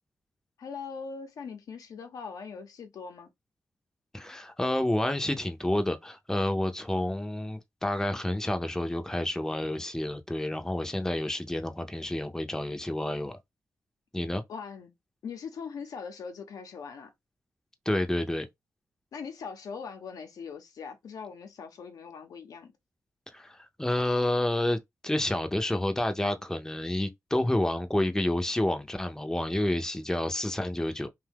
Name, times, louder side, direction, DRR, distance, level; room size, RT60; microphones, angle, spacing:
voice 1, 0.6-3.3 14.5-14.9 15.2-17.1 19.1-22.7, left 5 dB, 80° left, 0.7 m, -41 dB
voice 2, 4.1-13.3 14.1-14.4 17.9-18.5 23.3-24.8 25.0-31.1, left 1 dB, 10° left, 0.6 m, -29 dB
2.7 x 2.3 x 3.4 m
cardioid pair, 60°, 6 cm